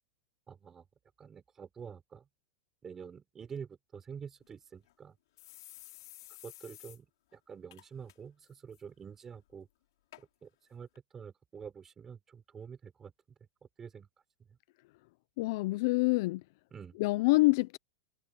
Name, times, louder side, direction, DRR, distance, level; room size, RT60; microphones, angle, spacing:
voice 1, 0.5-0.9 1.2-2.3 2.8-5.2 6.4-7.1 7.3-9.7 10.2-10.9 11.1-13.1 13.8-14.1 14.5-14.6 16.7-17.0, right 7 dB, 15° right, 4.4 m, -47 dB
sound 1, 4.4-4.5 4.9-5.0 5.4-7.0 7.3-7.4 7.7-8.1 8.5-8.8 9.5-9.6 10.1-10.2 11.0-11.1, left 15 dB, 70° left, 6.5 m, -52 dB
voice 2, 15.4-16.4 17.0-17.8, left 22 dB, 50° left, 0.4 m, -26 dB
supercardioid pair, 160°, 2 cm